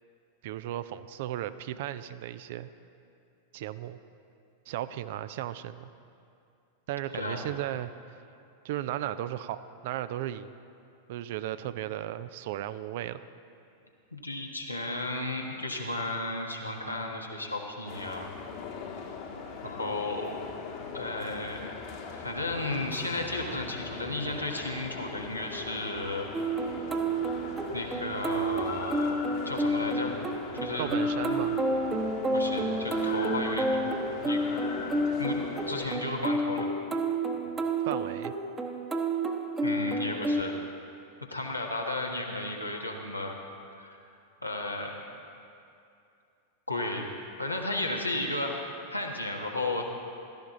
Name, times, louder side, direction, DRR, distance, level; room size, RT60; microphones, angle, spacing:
voice 1, 0.4-2.7 3.5-4.0 4.7-5.9 6.9-7.9 8.6-10.5 11.1-13.3 30.8-31.6 37.8-38.3, right 12 dB, 50° right, 13 dB, 0.5 m, -35 dB
voice 2, 14.1-18.3 19.6-20.4 20.9-21.7 22.2-26.3 27.7-29.2 29.4-30.2 30.5-30.9 32.3-34.4 35.2-35.4 35.7-36.7 39.6-40.5 41.3-43.4 43.8-44.0 44.4-45.0 46.7-47.1 47.4-49.9, left 2 dB, 85° left, 0 dB, 1.4 m, -34 dB
sound 1, 17.9-35.9, left 5 dB, 45° left, 1.4 m, -40 dB
sound 2, 26.3-40.4, right 1 dB, 15° right, 1.0 m, -30 dB
16.0 x 13.0 x 3.9 m, 2.5 s
figure-of-eight pair, 90°, 0 cm